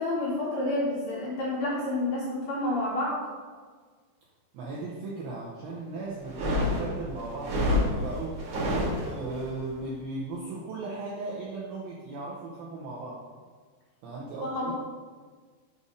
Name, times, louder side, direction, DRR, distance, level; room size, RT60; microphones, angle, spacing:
voice 1, 0.0-3.2 14.4-14.7, left 1 dB, 60° left, -9 dB, 2.0 m, -29 dB
voice 2, 4.5-8.4 9.0-13.2 14.0-14.7, right 3 dB, 80° right, -5 dB, 2.1 m, -37 dB
sound 1, 6.2-9.4, left 1 dB, 50° right, 2.9 m, -28 dB
6.9 x 4.1 x 5.0 m, 1.6 s
omnidirectional pair, 5.2 m